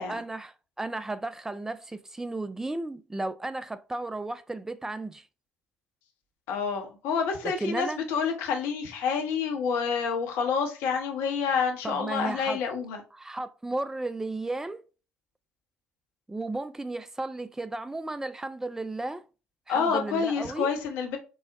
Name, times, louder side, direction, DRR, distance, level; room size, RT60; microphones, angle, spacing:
voice 1, 0.1-5.2 7.4-8.0 11.8-12.6 13.1-14.8 16.3-19.2 19.7-20.7, right 2 dB, 10° right, 0.3 m, -34 dB
voice 2, 6.5-13.0 19.7-21.2, left 6 dB, 60° left, 0.6 m, -28 dB
3.8 x 2.0 x 2.4 m
figure-of-eight pair, 50°, 5 cm